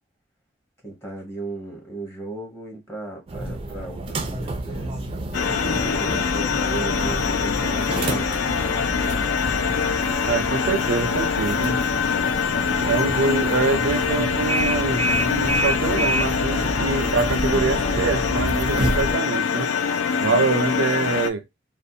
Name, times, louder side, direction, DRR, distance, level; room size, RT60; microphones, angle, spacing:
voice 1, 0.8-5.0 5.8-8.8, right 2 dB, 15° left, 0.8 m, -36 dB
sound 1, 3.3-19.2, right 1 dB, 30° right, 0.3 m, -29 dB
sound 2, 5.3-21.3, left 6 dB, 80° left, 0.3 m, -24 dB
voice 2, 10.3-11.8 12.8-19.7 20.2-21.4, right 4 dB, 85° right, 0.5 m, -25 dB
2.5 x 2.1 x 2.6 m
head